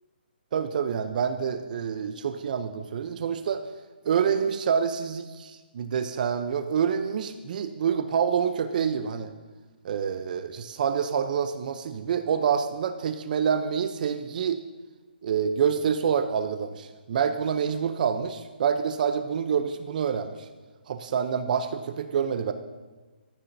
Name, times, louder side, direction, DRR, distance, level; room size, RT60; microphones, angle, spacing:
voice 1, 0.5-3.6 4.0-9.3 9.8-14.6 15.2-20.5 20.9-22.5, right 7 dB, 50° right, 9 dB, 0.7 m, -27 dB
17.0 x 13.5 x 2.7 m, 1.3 s
hypercardioid pair, 150°, 6 cm